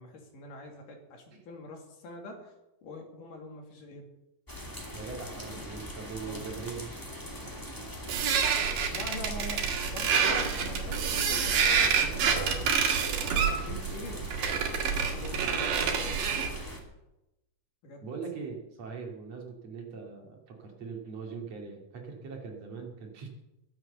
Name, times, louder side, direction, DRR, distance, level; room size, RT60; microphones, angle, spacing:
voice 1, 0.0-2.5 2.8-4.1 6.3-6.5 8.6-12.6 13.3-14.5 15.0-16.5 17.8-18.1, left 2 dB, 75° left, 2 dB, 4.0 m, -44 dB
sound 1, 4.5-16.8, left 1 dB, 5° left, 2.0 m, -41 dB
voice 2, 4.9-7.1 18.0-23.3, right 5 dB, 55° right, 1 dB, 3.3 m, -41 dB
sound 2, 8.1-16.6, right 6 dB, 85° right, 3.5 m, -28 dB
21.5 x 7.7 x 6.8 m, 0.94 s
omnidirectional pair, 3.8 m